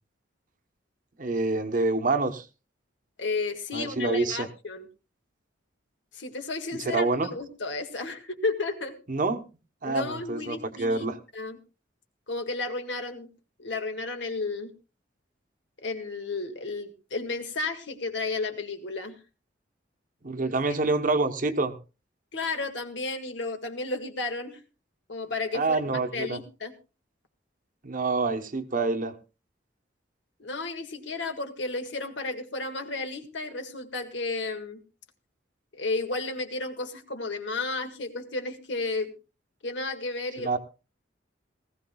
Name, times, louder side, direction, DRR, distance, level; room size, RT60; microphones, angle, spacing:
voice 1, 1.2-2.4 3.7-4.5 6.8-7.3 9.1-9.4 9.8-11.2 20.2-21.7 25.5-26.4 27.8-29.1 40.4-40.6, right 3 dB, 45° right, 8 dB, 0.9 m, -27 dB
voice 2, 3.2-4.9 6.1-8.9 9.8-11.6 12.3-13.3 13.6-14.7 15.8-19.2 20.4-20.5 22.3-24.6 25.1-26.7 30.4-34.8 35.7-39.1 39.6-40.6, left 3 dB, 70° left, 6 dB, 1.8 m, -33 dB
19.0 x 15.5 x 2.3 m, 0.32 s
head